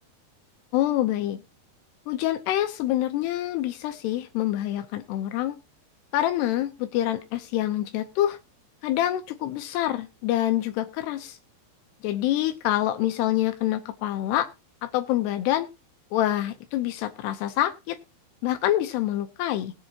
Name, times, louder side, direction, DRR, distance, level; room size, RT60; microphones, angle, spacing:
voice 1, 0.7-1.4 2.1-5.6 6.1-8.4 8.8-11.4 12.0-14.5 14.8-15.7 16.1-18.0 18.4-19.7, left 13 dB, 85° left, 8 dB, 2.9 m, -26 dB
20.0 x 7.6 x 2.8 m, 0.27 s
omnidirectional pair, 4.8 m